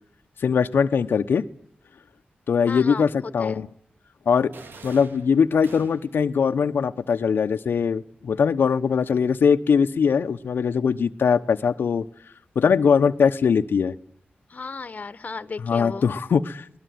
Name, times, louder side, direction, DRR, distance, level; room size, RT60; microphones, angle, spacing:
voice 1, 0.4-1.4 2.5-3.7 4.3-4.5 4.8-12.1 12.5-13.9 15.6-16.8, left 6 dB, 85° left, 1.0 m, -21 dB
voice 2, 2.7-3.6 14.5-16.1, left 4 dB, 50° left, 1.3 m, -35 dB
sound 1, 4.5-6.3, right 4 dB, 80° right, 2.7 m, -45 dB
23.0 x 20.0 x 9.5 m
wide cardioid pair, 90°, 4 cm